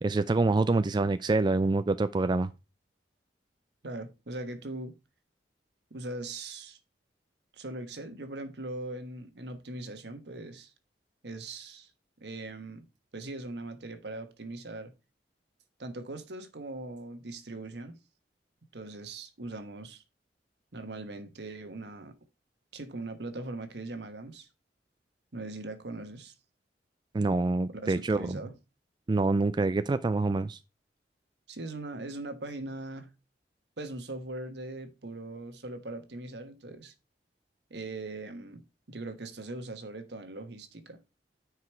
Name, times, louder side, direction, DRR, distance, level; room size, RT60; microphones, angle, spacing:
voice 1, 0.0-2.5 27.1-28.4 29.1-30.6, right 3 dB, 25° right, 0.3 m, -26 dB
voice 2, 3.8-4.9 5.9-6.8 7.5-10.7 11.2-11.9 12.2-12.9 13.1-14.9 15.8-18.0 18.7-20.0 20.7-22.1 22.7-24.5 25.3-26.3 27.8-28.6 31.5-33.1 33.8-36.9 37.7-41.0, right 2 dB, 65° right, 1.2 m, -40 dB
9.4 x 4.9 x 4.5 m
head